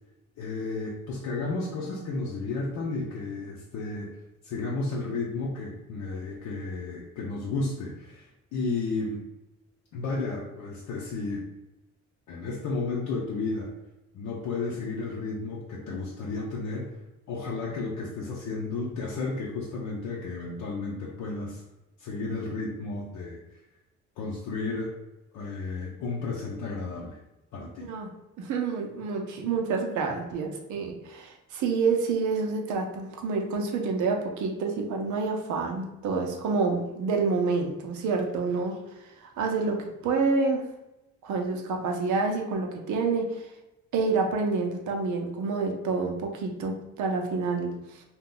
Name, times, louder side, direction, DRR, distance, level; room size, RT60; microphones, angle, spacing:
voice 1, 0.4-4.1 4.4-9.2 9.9-11.4 12.3-13.7 14.1-16.9 17.3-21.6 22.0-23.4 24.2-24.9 25.3-27.2 27.5-27.9, left 3 dB, 75° left, -4 dB, 0.6 m, -33 dB
voice 2, 28.4-38.8 39.2-40.6 41.2-43.5 43.9-48.0, right 4 dB, 75° right, 3 dB, 0.7 m, -28 dB
2.7 x 2.3 x 3.7 m, 0.96 s
cardioid pair, 90°, 30 cm